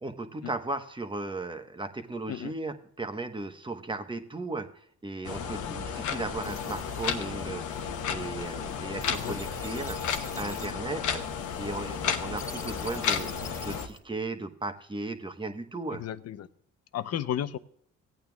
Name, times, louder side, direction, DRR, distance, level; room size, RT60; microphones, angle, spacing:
voice 1, 0.0-10.0 10.4-11.2 11.6-16.0, right 2 dB, 15° right, 7 dB, 1.1 m, -36 dB
sound 1, 5.2-13.9, left 7 dB, 80° left, 1.1 m, -33 dB
sound 2, 5.9-14.0, left 1 dB, 10° left, 2.1 m, -47 dB
voice 2, 9.1-9.4 15.9-16.5 16.9-17.6, left 10 dB, 55° left, 14 dB, 0.7 m, -33 dB
16.5 x 9.0 x 2.3 m, 0.65 s
cardioid pair, 90°, 30 cm